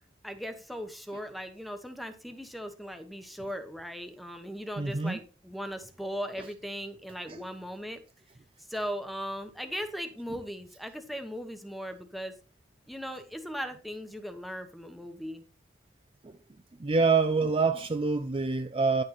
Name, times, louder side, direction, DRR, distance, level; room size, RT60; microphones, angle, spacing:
voice 1, 0.2-8.0 8.7-12.3 12.9-15.4, equal, ahead, 1.1 m, -38 dB
voice 2, 4.8-5.2 16.8-19.0, right 4 dB, 30° right, 0.5 m, -26 dB
10.5 x 6.6 x 4.3 m
head